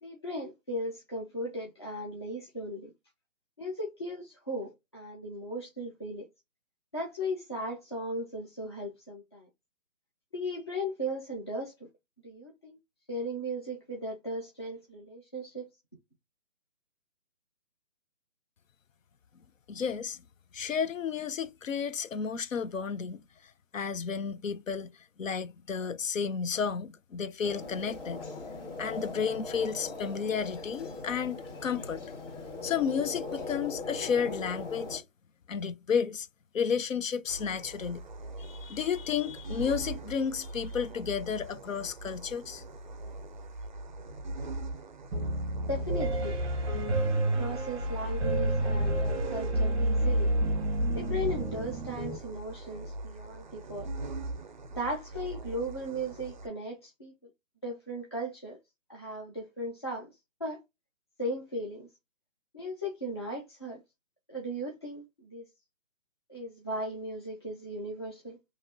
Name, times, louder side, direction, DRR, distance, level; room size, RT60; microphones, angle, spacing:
voice 1, 0.0-2.9 3.6-6.3 6.9-9.5 10.3-11.7 12.2-12.8 13.1-15.7 45.7-46.4 46.6-50.3 50.9-53.9 54.7-57.1 57.6-58.6 58.9-60.1 60.4-60.6 61.2-61.9 62.5-63.8 64.3-65.0 65.3-65.4 66.3-68.4, equal, 20° left, 0.4 m, -37 dB
voice 2, 19.7-20.2 20.5-28.2 28.8-32.1 32.6-35.0 35.5-36.3 36.5-38.0 38.4-42.6, left 6 dB, 85° left, 0.7 m, -32 dB
sound 1, 27.4-35.0, left 3 dB, 65° left, 2.0 m, -40 dB
sound 2, 37.3-56.5, right 2 dB, 40° right, 0.4 m, -42 dB
Piano, 45.1-52.2, right 1 dB, 20° right, 0.8 m, -29 dB
4.5 x 2.9 x 2.5 m
hypercardioid pair, 155°, 38 cm